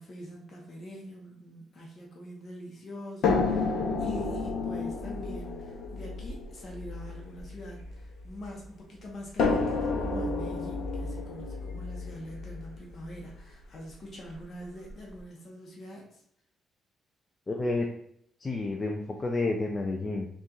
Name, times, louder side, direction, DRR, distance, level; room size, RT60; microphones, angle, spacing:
voice 1, 0.0-16.2, equal, 50° left, -1 dB, 1.0 m, -44 dB
sound 1, 3.2-8.4 9.4-13.4 14.3-14.4 14.9-15.0, left 4 dB, 80° left, 0.8 m, -31 dB
voice 2, 17.5-17.9 18.4-20.3, left 2 dB, 30° left, 1 dB, 0.5 m, -30 dB
4.1 x 2.4 x 3.8 m, 0.70 s
cardioid pair, 90°, 0 cm